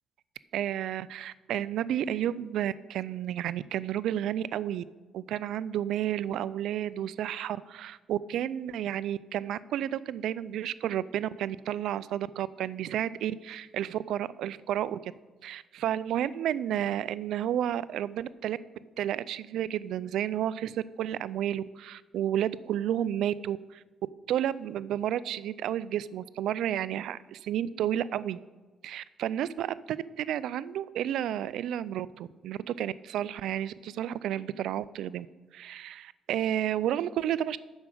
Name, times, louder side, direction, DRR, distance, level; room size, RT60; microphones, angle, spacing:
voice 1, 0.5-4.8 5.1-15.1 15.4-18.6 19.0-23.8 24.3-28.4 28.8-35.3 35.5-37.6, right 11 dB, 80° right, 17 dB, 0.3 m, -31 dB
7.4 x 6.1 x 7.6 m, 1.3 s
cardioid pair, 90°, 0 cm